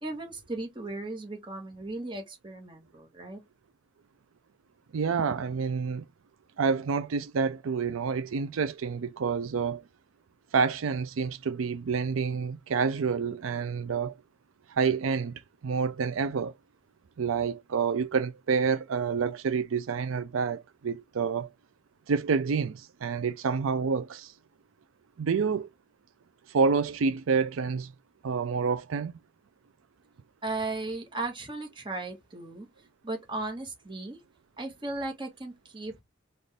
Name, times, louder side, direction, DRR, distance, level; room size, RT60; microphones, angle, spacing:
voice 1, 0.0-3.4 30.4-32.7 33.0-34.2 34.6-36.0, right 2 dB, 25° right, 1.3 m, -36 dB
voice 2, 4.9-6.0 6.6-9.8 10.5-14.1 14.7-15.3 15.6-16.5 17.2-21.5 22.1-24.3 25.2-25.7 26.5-27.9 28.2-29.2, right 5 dB, 85° right, 0.5 m, -28 dB
4.0 x 2.5 x 3.3 m
head